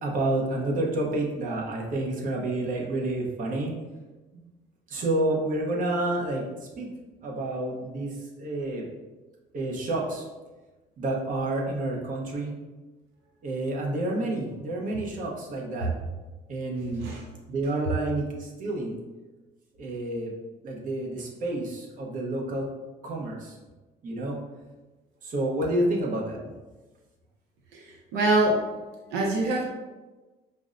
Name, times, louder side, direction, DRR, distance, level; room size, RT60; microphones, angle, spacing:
voice 1, 0.0-3.7 4.9-6.4 6.8-6.9 7.2-8.8 9.5-10.2 11.0-12.5 13.4-15.9 16.5-17.1 17.5-19.0 19.8-20.3 20.6-22.7 23.0-23.6 24.0-24.4 25.2-26.5, right 2 dB, 50° right, -2 dB, 0.8 m, -29 dB
voice 2, 27.7-28.7 29.1-29.6, right 2 dB, 90° right, -1 dB, 0.6 m, -24 dB
5.1 x 2.1 x 2.5 m, 1.2 s
cardioid pair, 110°, 17 cm